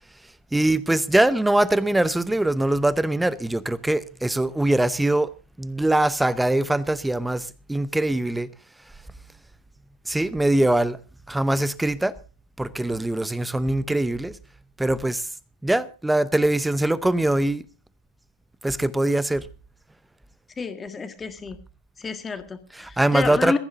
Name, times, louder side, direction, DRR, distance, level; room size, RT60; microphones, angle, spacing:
voice 1, 0.5-5.3 5.6-8.5 10.1-11.0 11.3-12.1 12.6-14.3 14.8-15.2 15.6-17.6 18.6-19.4 22.7-23.6, right 1 dB, 5° right, 0.8 m, -22 dB
voice 2, 20.6-21.6 22.0-23.6, left 4 dB, 15° left, 1.7 m, -30 dB
21.5 x 14.5 x 2.7 m
figure-of-eight pair, 90°, 0 cm